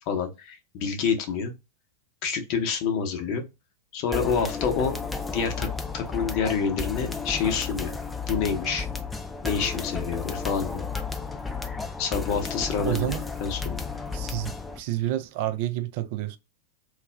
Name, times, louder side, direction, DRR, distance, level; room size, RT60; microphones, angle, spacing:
voice 1, 0.1-1.5 2.2-3.4 3.9-4.9 5.3-5.7 5.9-7.9 8.2-8.9 9.4-10.9 12.0-13.1 13.4-13.9, left 6 dB, 50° left, 0.8 m, -27 dB
sound 1, 4.1-14.8, left 4 dB, 10° left, 0.5 m, -33 dB
voice 2, 12.8-13.2 14.1-16.4, right 14 dB, 55° right, 0.3 m, -29 dB
2.3 x 2.1 x 3.2 m
hypercardioid pair, 100°, 0 cm